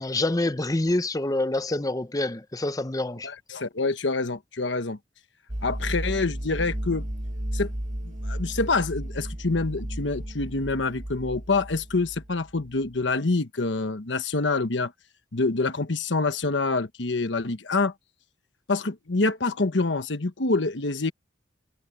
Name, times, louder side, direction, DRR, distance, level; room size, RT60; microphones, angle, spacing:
voice 1, 0.0-3.3, left 2 dB, 20° left, 0.7 m, -26 dB
voice 2, 3.2-5.0 5.6-7.1 7.5-7.7 8.0-14.9 15.3-17.9 18.7-21.1, left 3 dB, 75° left, 1.2 m, -26 dB
sound 1, 5.5-12.9, equal, 40° right, 1.7 m, -34 dB
head